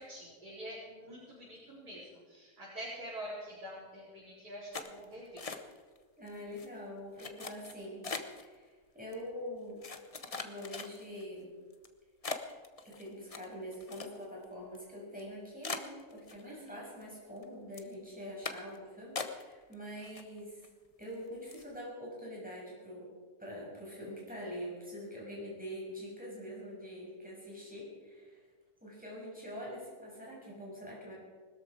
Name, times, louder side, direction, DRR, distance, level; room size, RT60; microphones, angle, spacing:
voice 1, 0.0-5.6 16.4-16.8, equal, 85° right, -10 dB, 5.0 m, -46 dB
sound 1, 4.7-6.0 6.3-6.7 7.2-8.5 9.1-9.2 9.8-11.2 11.7-11.9 12.2-14.4 14.7-14.8 15.2-15.3 15.6-16.7 17.0-17.4 17.7-17.9 18.4-18.8 19.2-19.7 20.0-20.7 21.0-21.1 21.5-21.7, left 4 dB, 30° left, 0.7 m, -41 dB
voice 2, 6.2-8.1 8.4-9.8 10.3-11.5 12.8-20.6 21.0-23.1 23.4-28.4 28.8-31.1, equal, 5° right, -5 dB, 6.4 m, -44 dB
20.5 x 13.5 x 4.9 m, 1.5 s
omnidirectional pair, 1.7 m